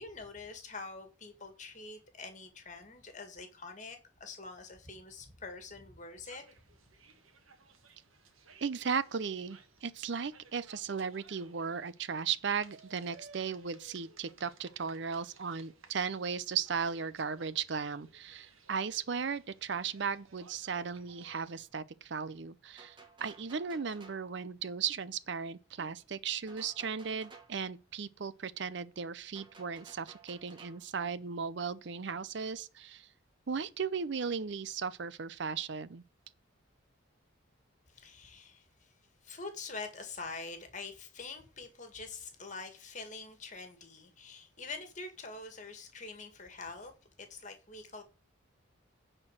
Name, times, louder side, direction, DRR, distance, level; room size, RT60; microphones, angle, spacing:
voice 1, 0.0-6.4 37.9-38.9 39.2-46.9 47.2-48.0, left 3 dB, 35° left, 2.0 m, -45 dB
sound 1, 6.2-21.7, right 4 dB, 85° right, 1.6 m, -60 dB
voice 2, 8.6-33.1 33.5-36.0, right 6 dB, 60° right, 0.5 m, -36 dB
sound 2, 22.8-24.3 26.5-27.6 29.3-30.9, right 4 dB, 25° right, 1.4 m, -55 dB
9.9 x 4.5 x 7.6 m
head